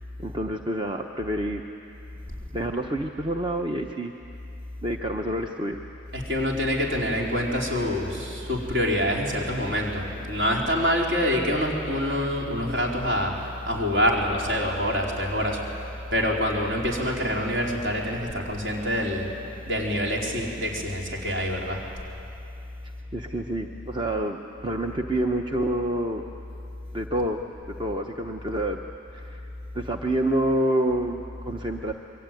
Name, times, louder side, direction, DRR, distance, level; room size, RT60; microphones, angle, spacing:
voice 1, 0.2-1.6 2.5-4.1 4.8-5.8 23.1-26.2 26.9-27.4 27.8-28.8 29.1-29.4 29.7-31.9, right 1 dB, 25° right, 3 dB, 0.9 m, -27 dB
voice 2, 6.1-15.6 16.1-19.3 19.7-21.8, equal, 55° right, -2 dB, 4.4 m, -26 dB
27.0 x 22.5 x 9.2 m, 2.8 s
head